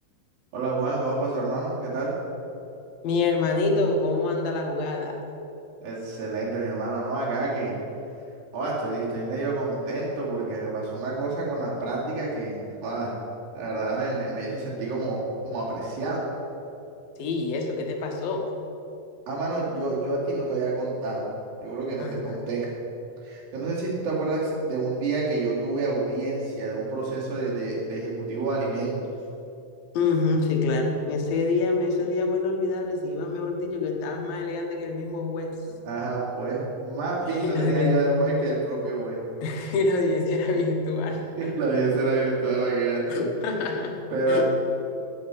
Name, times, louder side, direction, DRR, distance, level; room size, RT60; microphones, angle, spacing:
voice 1, 0.5-2.2 5.8-7.8 8.5-12.6 12.8-13.1 13.5-16.2 19.3-21.3 21.6-22.7 23.2-29.0 35.9-39.2 41.1-43.3 43.6-43.7 44.1-44.4, right 3 dB, 80° right, -5 dB, 4.3 m, -28 dB
voice 2, 3.0-5.1 17.2-18.4 22.0-22.4 29.9-35.5 37.4-38.0 39.4-41.6 43.1-44.0 44.3-44.4, left 3 dB, 80° left, 2 dB, 3.0 m, -26 dB
8.4 x 7.9 x 9.1 m, 2.8 s
omnidirectional pair, 4.1 m